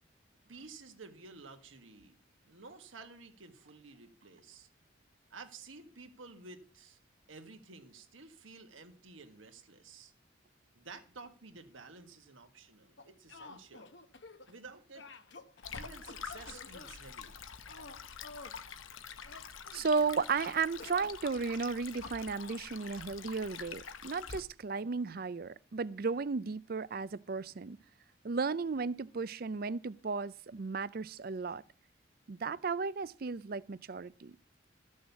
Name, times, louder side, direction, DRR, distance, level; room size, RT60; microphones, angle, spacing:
voice 1, 0.5-2.2 2.4-4.7 5.3-7.0 7.3-10.1 10.8-13.9 14.5-15.1 15.7-17.3, right 4 dB, 80° right, 1.7 m, -52 dB
sound 1, 13.0-14.6 15.0-16.9 17.7-18.6 19.2-20.1 20.8-21.2 22.0-22.6, left 3 dB, 60° left, 1.0 m, -50 dB
Stream, 15.6-24.4, left 6 dB, 85° left, 1.0 m, -46 dB
voice 2, 19.7-27.8 28.2-31.6 32.3-34.3, right 4 dB, 50° right, 0.5 m, -34 dB
14.0 x 6.4 x 7.1 m
head